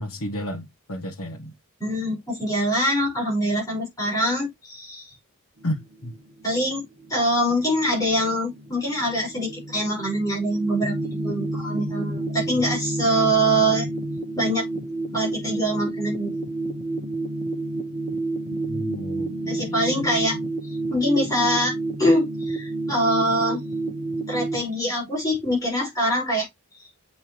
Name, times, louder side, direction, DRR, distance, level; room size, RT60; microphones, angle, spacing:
voice 1, 0.0-1.5 5.6-6.1 18.6-20.5, equal, 85° left, 1.3 m, -33 dB
voice 2, 1.8-5.1 6.4-6.8 7.1-13.9 14.4-14.7 15.1-16.4 19.5-20.4 20.6-23.6 24.3-26.5, equal, 15° left, 5.1 m, -24 dB
sound 1, 5.6-24.6, right 2 dB, 40° right, 1.0 m, -30 dB
7.5 x 5.6 x 3.1 m
head